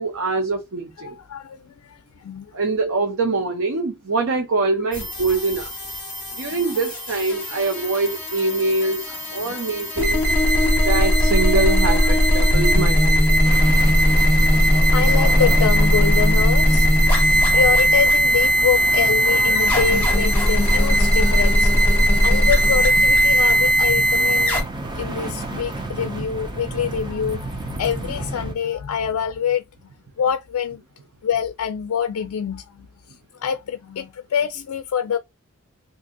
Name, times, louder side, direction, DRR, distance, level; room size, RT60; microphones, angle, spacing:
voice 1, 0.0-1.2 2.5-5.7 6.4-10.3 10.8-13.5, right 3 dB, 65° right, 0.7 m, -24 dB
voice 2, 1.0-2.5 6.3-6.6 9.1-9.6 10.5-10.8 11.9-12.1 13.3-29.6 30.2-30.8 31.2-32.9 33.3-35.2, left 7 dB, 80° left, 0.4 m, -26 dB
sound 1, 4.9-24.6, equal, 10° left, 1.4 m, -18 dB
sound 2, 13.4-28.5, right 2 dB, 20° right, 0.6 m, -32 dB
2.7 x 2.6 x 3.7 m
head